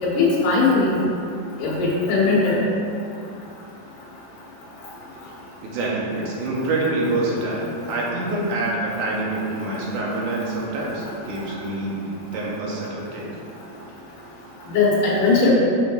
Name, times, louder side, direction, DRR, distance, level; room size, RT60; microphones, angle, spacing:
voice 1, 0.0-1.0 1.6-2.6 14.7-15.5, left 3 dB, 80° left, -6 dB, 3.1 m, -19 dB
voice 2, 5.6-13.3, right 2 dB, 80° right, -4 dB, 2.6 m, -26 dB
9.0 x 5.8 x 2.6 m, 2.5 s
omnidirectional pair, 3.6 m